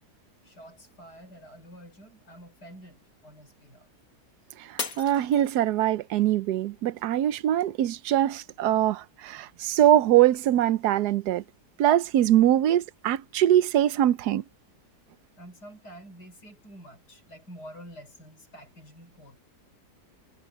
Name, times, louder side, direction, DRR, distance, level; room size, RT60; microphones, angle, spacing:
voice 1, 0.4-3.9 15.4-19.4, equal, 80° left, 6.2 m, -48 dB
voice 2, 4.6-11.4 11.8-14.4, right 12 dB, 75° right, 1.3 m, -23 dB
Shatter, 4.8-6.1 6.6-7.1 7.6-7.7, left 5 dB, 60° left, 2.2 m, -37 dB
omnidirectional pair, 1.7 m